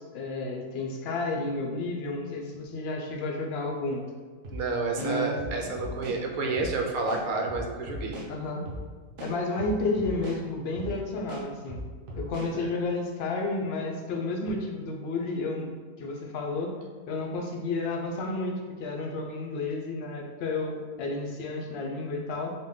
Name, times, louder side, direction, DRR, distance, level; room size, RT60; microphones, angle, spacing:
voice 1, 0.0-4.0 5.0-5.4 5.6-5.7 8.3-8.6 9.2-11.8 12.1-15.7 16.0-16.7 17.1-22.5, left 3 dB, 70° left, 1 dB, 0.6 m, -31 dB
sound 1, 4.4-4.6 5.0-6.2 6.5-6.7 7.1-8.3 8.7-8.8 9.2-10.4 10.8-10.9 11.3-12.5, equal, 60° right, 0.6 m, -38 dB
voice 2, 4.5-8.2 12.5-12.7, right 3 dB, 75° right, 1 dB, 1.0 m, -30 dB
3.8 x 2.2 x 3.6 m, 1.6 s
omnidirectional pair, 1.6 m